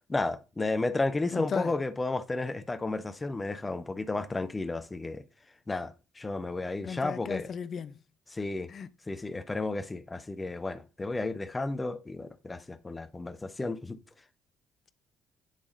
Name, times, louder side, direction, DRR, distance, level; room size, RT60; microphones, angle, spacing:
voice 1, 0.1-5.2 5.7-7.5 8.3-8.7 9.1-14.0, left 2 dB, 20° left, 0.8 m, -32 dB
voice 2, 1.3-1.7 6.8-8.0 8.7-8.9, left 6 dB, 45° left, 0.5 m, -35 dB
9.2 x 3.6 x 3.9 m
figure-of-eight pair, 50°, 0 cm